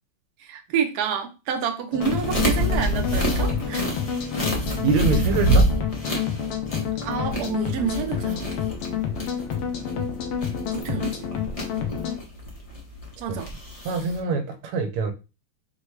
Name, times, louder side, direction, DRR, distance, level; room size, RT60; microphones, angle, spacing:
voice 1, 0.4-3.9 7.0-8.5 10.7-11.1 13.2-13.5, right 7 dB, 65° right, 1.0 m, -28 dB
sound 1, 1.9-12.2, left 8 dB, 85° left, 1.6 m, -29 dB
sound 2, 2.0-14.2, right 1 dB, 50° left, 0.4 m, -27 dB
voice 2, 4.8-5.7 10.9-11.0 13.3-13.4 13.8-15.1, right 4 dB, 80° right, 1.6 m, -25 dB
4.7 x 2.2 x 4.5 m
omnidirectional pair, 2.4 m